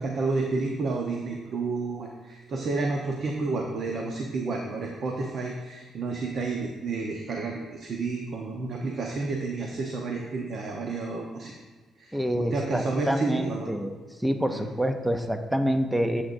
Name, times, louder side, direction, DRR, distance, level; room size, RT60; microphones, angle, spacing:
voice 1, 0.0-11.5 12.0-13.7 14.5-14.7, right 3 dB, 50° right, 1 dB, 0.9 m, -30 dB
voice 2, 12.1-13.9 14.2-16.2, equal, 5° right, 6 dB, 0.5 m, -27 dB
12.0 x 7.9 x 2.6 m, 1.3 s
cardioid pair, 135°, 0 cm